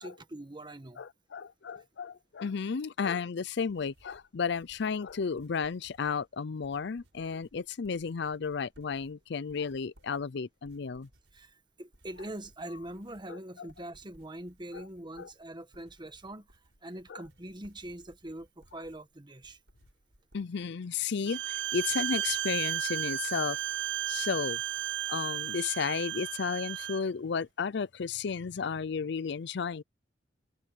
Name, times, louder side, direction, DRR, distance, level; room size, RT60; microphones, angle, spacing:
voice 1, 0.0-1.0 11.3-19.6, right 1 dB, 25° right, 1.4 m, -43 dB
voice 2, 1.0-11.1 13.3-13.7 14.7-14.8 15.2-15.3 17.1-17.2 20.3-23.6 24.1-24.6 25.1-29.8, left 5 dB, 65° left, 0.5 m, -33 dB
sound 1, 3.5-20.4, right 1 dB, 85° right, 5.7 m, -64 dB
Bowed string instrument, 21.3-27.0, right 12 dB, 70° right, 0.4 m, -34 dB
head